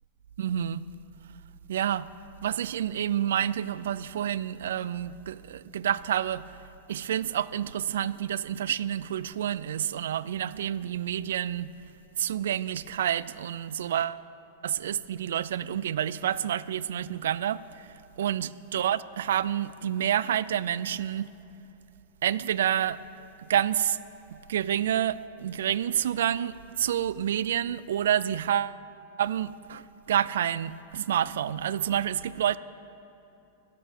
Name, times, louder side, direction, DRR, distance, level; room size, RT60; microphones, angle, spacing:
voice 1, 0.4-0.9 1.7-2.1 2.4-6.5 6.9-11.7 12.2-14.2 14.6-17.9 18.2-21.3 22.2-23.0 23.5-24.0 24.5-28.8 29.2-32.6, right 10 dB, 85° right, 0.3 m, -28 dB
11.0 x 8.3 x 8.8 m
supercardioid pair, 140°, 0 cm